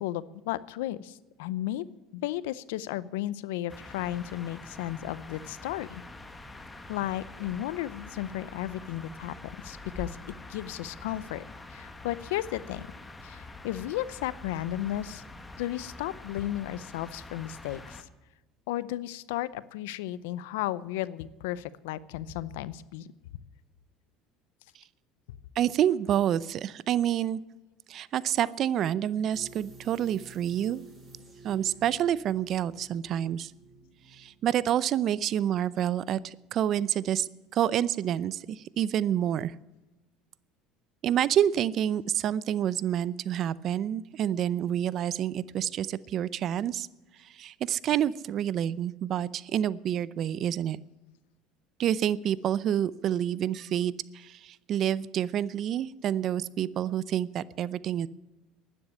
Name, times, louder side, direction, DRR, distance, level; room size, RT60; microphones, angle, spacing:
voice 1, 0.0-1.8 2.1-6.0 6.9-10.2 10.5-11.4 11.7-12.8 13.2-15.2 15.6-18.1 18.7-23.1, left 14 dB, 85° left, 18 dB, 0.6 m, -34 dB
sound 1, 3.7-18.0, left 2 dB, 15° left, 1.5 m, -45 dB
voice 2, 25.6-27.4 27.9-30.8 31.4-33.5 34.1-39.5 41.0-46.9 47.3-50.8 51.8-58.1, right 10 dB, 50° right, 20 dB, 0.6 m, -28 dB
sound 2, 29.3-36.1 36.4-36.5, right 3 dB, 25° right, 6.2 m, -52 dB
12.0 x 9.9 x 9.7 m, 1.0 s
supercardioid pair, 100°, 0 cm